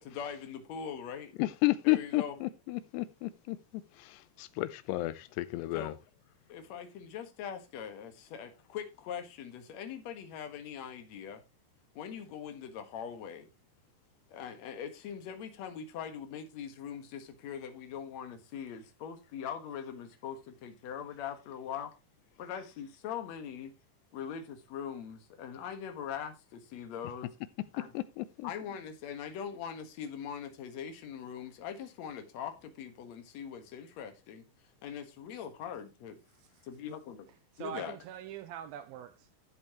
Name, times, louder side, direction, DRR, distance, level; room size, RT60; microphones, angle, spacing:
voice 1, 0.0-1.3 1.8-2.3 5.7-6.0 6.5-11.4 12.0-13.5 14.3-21.9 22.4-23.7 24.1-27.3 27.7-27.9 28.4-34.4 34.8-36.2 36.6-37.3 37.6-38.0, left 8 dB, 60° left, 2.1 m, -41 dB
voice 2, 1.4-5.9 27.9-28.5, left 19 dB, 90° left, 2.9 m, -32 dB
voice 3, 37.6-39.4, right 10 dB, 80° right, 2.2 m, -43 dB
12.5 x 7.7 x 3.0 m
omnidirectional pair, 4.8 m